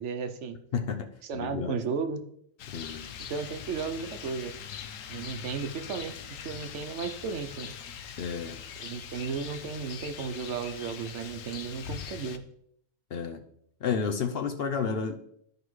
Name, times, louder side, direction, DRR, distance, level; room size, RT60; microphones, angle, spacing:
voice 1, 0.0-0.6 1.2-2.2 3.3-4.5 5.1-6.2 6.4-7.7 8.8-12.4, right 5 dB, 70° right, 8 dB, 1.0 m, -34 dB
voice 2, 0.7-1.1 1.3-1.8 2.7-3.1 8.2-8.6 13.1-13.4 13.8-15.2, left 6 dB, 55° left, 5 dB, 0.8 m, -31 dB
Rain, 2.6-12.4, left 8 dB, 85° left, 1.0 m, -42 dB
12.5 x 4.9 x 3.2 m, 0.71 s
omnidirectional pair, 1.3 m